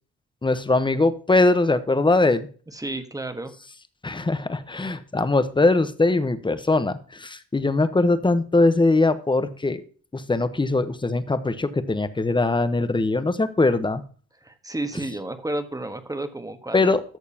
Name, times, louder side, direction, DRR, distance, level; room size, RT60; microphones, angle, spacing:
voice 1, 0.4-2.5 4.0-9.8 10.1-14.0 16.7-17.0, left 2 dB, 15° left, 12 dB, 1.0 m, -21 dB
voice 2, 2.7-3.5 14.4-17.0, right 2 dB, 10° right, 8 dB, 1.5 m, -31 dB
13.5 x 6.6 x 2.9 m, 0.40 s
cardioid pair, 90°, 30 cm